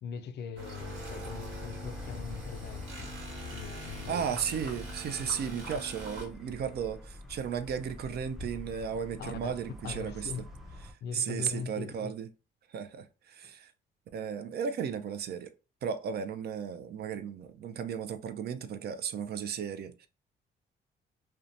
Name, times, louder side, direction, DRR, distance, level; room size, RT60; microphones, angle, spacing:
voice 1, 0.0-3.2 3.5-4.2 9.2-10.5 11.0-12.1 13.4-13.5, left 6 dB, 60° left, 0.4 m, -41 dB
sound 1, 0.6-6.3, equal, 75° right, 1.3 m, -43 dB
sound 2, 0.8-10.9, left 2 dB, ahead, 0.5 m, -46 dB
voice 2, 4.1-10.3 11.1-12.3 12.7-13.7 14.1-15.5 15.8-20.1, right 7 dB, 55° right, 0.4 m, -35 dB
2.7 x 2.2 x 2.5 m
cardioid pair, 90°, 20 cm